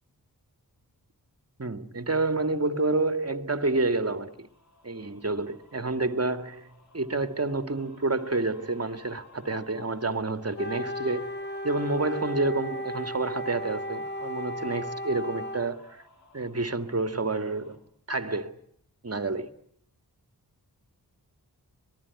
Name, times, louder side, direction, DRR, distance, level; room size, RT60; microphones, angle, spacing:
voice 1, 1.6-4.5 4.8-6.7 6.9-11.3 11.6-16.0 16.3-17.8 18.1-18.6 19.0-19.5, right 3 dB, 40° right, 2.0 m, -29 dB
sound 1, 4.2-17.8, left 2 dB, 45° left, 7.0 m, -56 dB
Wind instrument woodwind instrument, 10.5-15.7, equal, 25° left, 2.4 m, -35 dB
25.5 x 21.5 x 9.6 m
wide cardioid pair, 65°, 39 cm